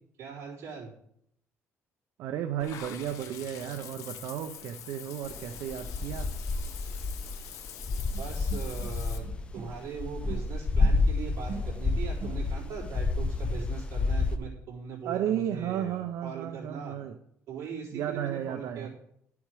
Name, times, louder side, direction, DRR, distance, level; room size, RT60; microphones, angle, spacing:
voice 1, 0.2-0.9 8.2-9.3 9.5-17.0 17.5-18.9, right 6 dB, 65° right, -4 dB, 3.9 m, -40 dB
voice 2, 2.2-6.3 15.0-17.2 17.9-18.9, right 10 dB, 80° right, 7 dB, 0.7 m, -33 dB
Water / Bathtub (filling or washing), 2.6-9.2, left 9 dB, 70° left, 1.1 m, -45 dB
sound 1, 5.3-14.4, left 3 dB, 20° left, 0.5 m, -29 dB
sound 2, 8.1-9.9 10.2-12.8, right 5 dB, 45° right, 1.1 m, -44 dB
11.5 x 7.1 x 4.8 m, 0.72 s
cardioid pair, 175°, 5 cm